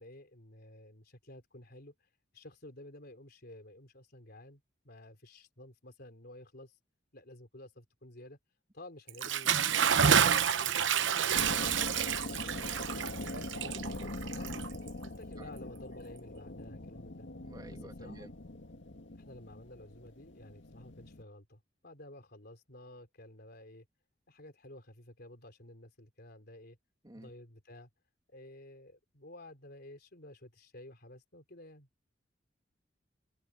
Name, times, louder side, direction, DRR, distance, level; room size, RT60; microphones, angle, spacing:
voice 1, 0.0-6.8 7.1-8.4 8.7-12.9 13.3-14.7 15.0-17.3 17.7-18.3 19.2-23.9 24.3-26.8 27.1-27.9 28.3-31.9, left 1 dB, 60° left, 3.9 m, -52 dB
Bathtub (filling or washing) / Splash splatter, 9.1-15.0, right 7 dB, 75° right, 0.9 m, -29 dB
sound 1, 11.3-21.2, left 2 dB, 75° left, 1.9 m, -42 dB
voice 2, 17.5-18.3 27.0-27.3, right 1 dB, 20° right, 2.3 m, -50 dB
head